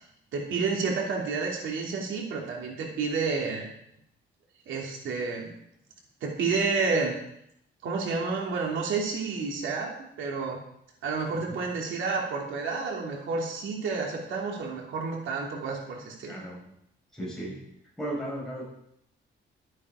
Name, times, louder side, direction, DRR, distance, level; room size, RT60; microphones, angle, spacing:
voice 1, 0.3-3.7 4.7-5.5 6.2-7.2 7.8-9.9 10.2-10.6 11.0-16.4, right 4 dB, 85° right, -1 dB, 3.0 m, -30 dB
voice 2, 16.3-16.6 17.1-17.7 18.0-18.6, right 1 dB, ahead, -6 dB, 5.7 m, -35 dB
13.0 x 9.8 x 5.0 m, 0.75 s
cardioid pair, 170°, 20 cm